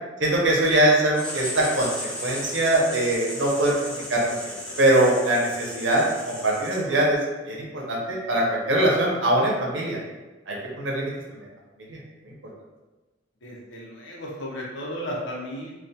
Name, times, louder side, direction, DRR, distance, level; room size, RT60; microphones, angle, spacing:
voice 1, 0.2-1.9 2.2-4.3 4.8-7.2 7.5-10.0 10.5-11.1 11.9-12.0 12.3-12.4, right 1 dB, 75° right, -3 dB, 0.6 m, -22 dB
Writing, 1.1-7.1, left 1 dB, 5° left, 0.4 m, -36 dB
voice 2, 13.4-15.7, equal, 75° left, -2 dB, 0.6 m, -34 dB
2.2 x 2.2 x 2.7 m, 1.2 s
head